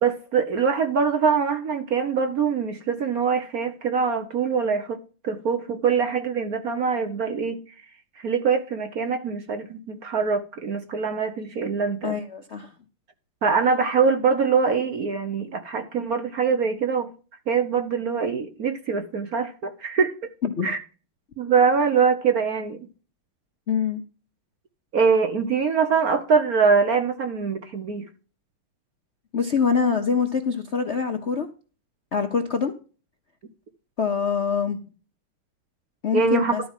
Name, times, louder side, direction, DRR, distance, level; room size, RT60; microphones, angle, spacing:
voice 1, 0.0-7.6 8.2-12.2 13.4-17.1 17.5-20.1 20.6-20.8 21.4-22.9 24.9-28.1 36.1-36.5, right 5 dB, 55° right, 1.1 m, -23 dB
voice 2, 12.0-12.7 20.4-20.7 23.7-24.0 29.3-31.5 32.1-32.7 34.0-34.8 36.0-36.6, left 6 dB, 55° left, 0.8 m, -24 dB
12.5 x 4.8 x 7.3 m
omnidirectional pair, 2.4 m